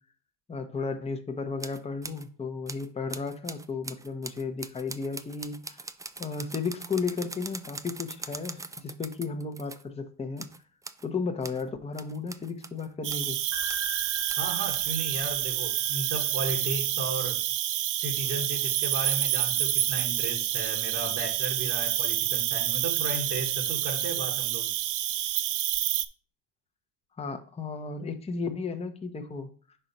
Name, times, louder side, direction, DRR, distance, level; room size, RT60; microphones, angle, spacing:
voice 1, 0.5-5.9 6.2-10.5 11.0-13.4 27.2-29.8, left 4 dB, 15° left, 0.8 m, -34 dB
sound 1, 1.6-2.3 2.7-9.8 10.4-11.1 11.4-11.6 11.9-13.3 13.7-13.9 14.3-14.9, right 3 dB, 10° right, 0.3 m, -42 dB
Cricket, 13.0-26.0, right 13 dB, 55° right, 0.6 m, -28 dB
sound 2, 13.5-16.4, right 1 dB, 30° left, 1.2 m, -41 dB
voice 2, 14.3-17.4 17.9-24.7, right 2 dB, 40° right, 1.2 m, -35 dB
4.9 x 4.4 x 5.2 m
cardioid pair, 105°, 37 cm